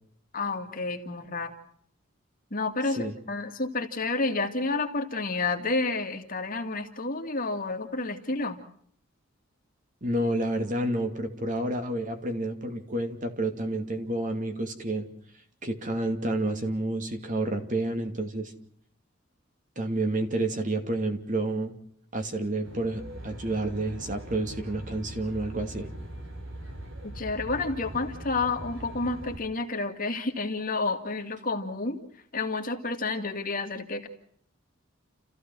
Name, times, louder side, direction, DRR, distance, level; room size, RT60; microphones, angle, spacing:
voice 1, 0.3-1.5 2.5-8.6 27.0-32.0 32.3-34.1, left 3 dB, 45° left, 5 dB, 2.2 m, -30 dB
voice 2, 10.0-15.1 15.6-18.5 19.8-21.7 22.1-25.9, right 1 dB, 40° right, 6 dB, 2.6 m, -29 dB
Aircraft, 22.6-29.4, equal, 65° right, 4.2 m, -41 dB
30.0 x 15.0 x 6.1 m, 0.65 s
head